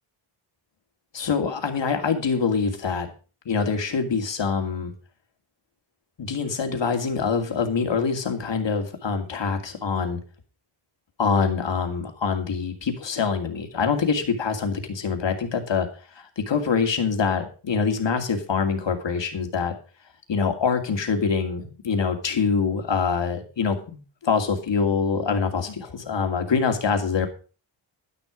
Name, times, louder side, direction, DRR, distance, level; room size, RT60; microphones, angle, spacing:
voice 1, 1.1-3.1 3.5-4.9 6.2-10.2 11.2-15.9 16.2-19.7 20.3-27.3, left 5 dB, 60° left, 5 dB, 2.5 m, -25 dB
12.0 x 10.0 x 5.1 m, 0.36 s
wide cardioid pair, 115°, 49 cm